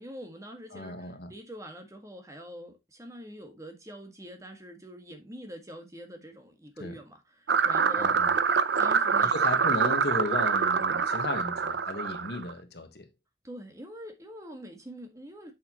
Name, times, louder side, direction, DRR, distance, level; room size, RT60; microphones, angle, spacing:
voice 1, 0.0-8.1 8.8-9.7 13.4-15.5, equal, 20° right, 1.7 m, -44 dB
voice 2, 0.7-1.3 6.8-7.0 8.0-8.3 9.2-13.1, left 2 dB, 65° left, 1.3 m, -35 dB
sound 1, 7.5-12.5, right 6 dB, 80° right, 0.6 m, -25 dB
8.4 x 6.5 x 2.9 m
head